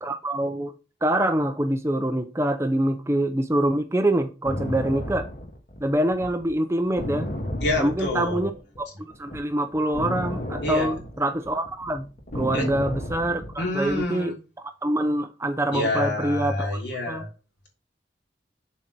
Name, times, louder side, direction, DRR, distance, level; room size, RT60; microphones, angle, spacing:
voice 1, 0.0-0.7 1.0-5.3 5.8-7.3 7.8-8.5 8.8-8.9 9.2-12.1 12.3-14.3 14.8-16.7 17.1-17.2, right 1 dB, 15° right, 0.6 m, -25 dB
sound 1, 4.4-8.8 9.1-14.0, left 1 dB, 45° left, 2.0 m, -33 dB
voice 2, 7.6-8.5 10.6-11.0 12.5-12.7 13.6-14.3 15.7-17.3, left 1 dB, 70° left, 3.2 m, -27 dB
7.5 x 4.4 x 6.6 m
head